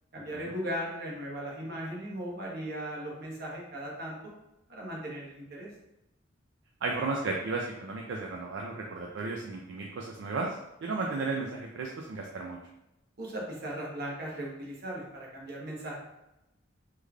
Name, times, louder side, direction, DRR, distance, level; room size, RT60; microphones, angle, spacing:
voice 1, 0.1-4.3 4.7-5.7 13.2-16.0, equal, 55° right, -3 dB, 1.0 m, -37 dB
voice 2, 6.8-12.6, right 3 dB, 70° right, 0 dB, 0.4 m, -34 dB
3.5 x 3.2 x 2.3 m, 0.92 s
head